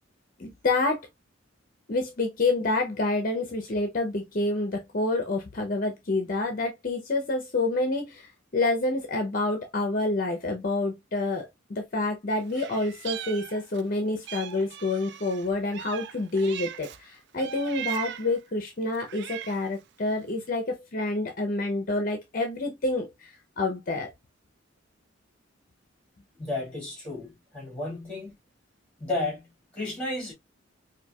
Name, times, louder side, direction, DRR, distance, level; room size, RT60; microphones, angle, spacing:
voice 1, 0.4-1.1 1.9-24.1, left 2 dB, 45° left, 0.6 m, -28 dB
Meow, 12.5-13.9 14.3-17.0 17.4-18.4 18.9-19.8, right 11 dB, 60° right, 0.3 m, -39 dB
voice 2, 26.4-28.3 29.0-30.3, left 2 dB, 5° left, 1.9 m, -33 dB
4.3 x 2.6 x 2.2 m
head